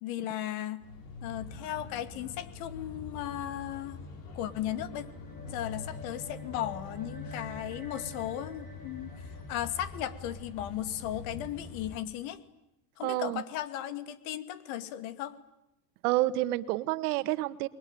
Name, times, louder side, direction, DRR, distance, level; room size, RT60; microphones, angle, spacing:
voice 1, 0.0-0.9 1.2-4.0 4.3-5.1 5.5-12.4 13.0-15.4, left 12 dB, 75° left, 12 dB, 2.5 m, -36 dB
sound 1, 0.8-12.0, left 3 dB, 55° left, 6.9 m, -45 dB
sound 2, 4.3-10.9, left 2 dB, 20° left, 8.0 m, -47 dB
voice 2, 13.0-13.4 16.0-17.7, right 16 dB, 80° right, 13 dB, 1.6 m, -29 dB
30.0 x 22.0 x 9.1 m, 0.88 s
supercardioid pair, 130°, 44 cm